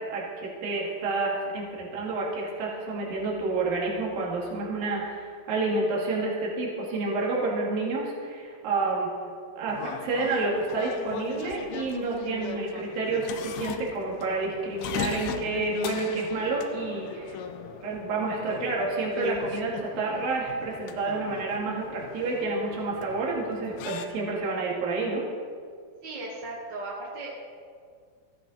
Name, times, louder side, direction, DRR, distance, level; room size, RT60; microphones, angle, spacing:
voice 1, 0.0-9.1 9.6-17.4 17.8-25.2, right 3 dB, 75° right, -3 dB, 4.0 m, -29 dB
sound 1, 9.7-24.1, left 8 dB, 85° left, 2.7 m, -38 dB
voice 2, 26.0-27.3, right 2 dB, 45° right, -4 dB, 1.5 m, -36 dB
15.0 x 13.0 x 4.5 m, 2.2 s
omnidirectional pair, 4.2 m